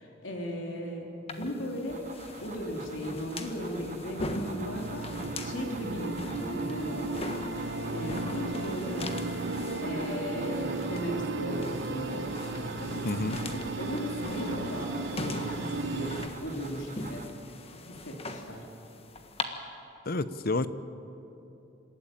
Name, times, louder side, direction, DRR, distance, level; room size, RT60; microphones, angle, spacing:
voice 1, 0.0-2.0 2.4-5.1 5.4-7.3 7.9-9.0 9.8-13.1 13.4-16.2 16.4-17.2 17.9-18.6, equal, 80° left, 0 dB, 3.3 m, -37 dB
sound 1, 1.3-19.4, left 2 dB, 30° left, 1.4 m, -41 dB
sound 2, 1.9-17.3, right 4 dB, 40° right, 1.2 m, -47 dB
sound 3, 4.6-16.3, right 2 dB, 65° right, 1.1 m, -35 dB
voice 2, 13.0-13.4 20.1-20.7, left 2 dB, 50° left, 14 dB, 0.8 m, -29 dB
26.5 x 13.0 x 9.1 m, 3.0 s
head